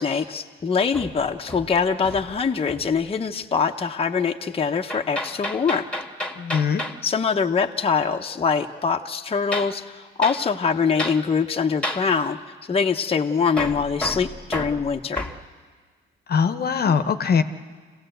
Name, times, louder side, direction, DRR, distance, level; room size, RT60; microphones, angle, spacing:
voice 1, 0.0-5.9 7.0-12.4 12.7-15.3, left 5 dB, 30° left, 3 dB, 0.9 m, -23 dB
Hammer, 0.9-2.4 2.7-3.0 4.9-7.0 9.5-9.8 10.2-10.4 11.0-11.2 11.8-12.1 13.6-15.4, left 1 dB, 5° left, 1.8 m, -31 dB
voice 2, 6.4-6.8 16.3-17.4, left 6 dB, 50° left, 8 dB, 1.0 m, -21 dB
26.0 x 16.5 x 8.0 m, 1.5 s
cardioid pair, 90°, 20 cm